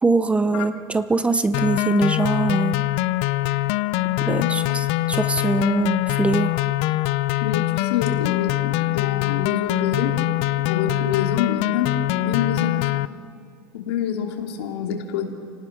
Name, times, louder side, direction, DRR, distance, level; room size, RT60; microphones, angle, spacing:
voice 1, 0.0-2.8 4.3-6.6, right 3 dB, 10° right, 12 dB, 0.6 m, -22 dB
sound 1, 1.5-13.1, left 17 dB, 50° left, 0.5 m, -23 dB
voice 2, 7.4-10.2 10.6-13.0 13.7-15.3, left 8 dB, 85° left, 2 dB, 3.0 m, -27 dB
29.5 x 18.5 x 6.1 m, 2.4 s
supercardioid pair, 150°, 13 cm